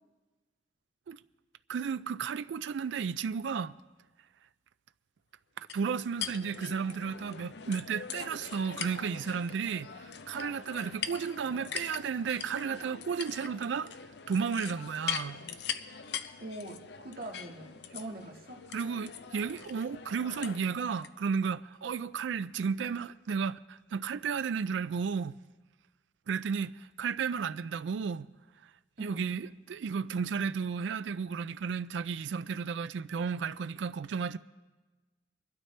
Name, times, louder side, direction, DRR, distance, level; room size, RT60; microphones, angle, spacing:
voice 1, 1.7-3.7 5.7-13.9 14.3-15.4 18.7-25.3 26.3-28.3 29.0-34.4, right 6 dB, 80° right, 0.4 m, -33 dB
sound 1, 5.7-21.1, left 8 dB, 60° left, 0.6 m, -42 dB
voice 2, 16.4-18.7 29.0-29.3, right 1 dB, 55° right, 1.8 m, -43 dB
23.5 x 12.0 x 3.3 m
head